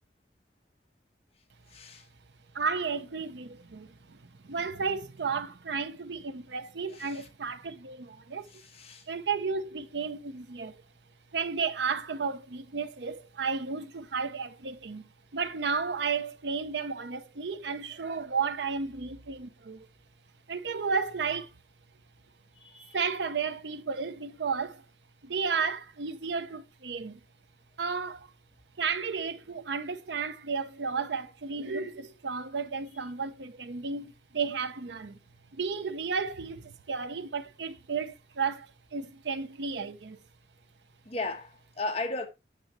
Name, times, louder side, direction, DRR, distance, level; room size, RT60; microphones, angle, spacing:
voice 1, 1.7-2.0 6.9-7.3 8.5-9.0 22.6-23.0 41.0-42.3, left 2 dB, 35° left, 1.3 m, -36 dB
voice 2, 2.5-8.5 9.1-10.8 11.3-19.9 20.5-21.5 22.9-24.8 25.2-27.2 27.8-28.3 28.8-35.2 35.5-40.2, right 5 dB, 75° right, 0.7 m, -33 dB
9.1 x 6.3 x 3.0 m
head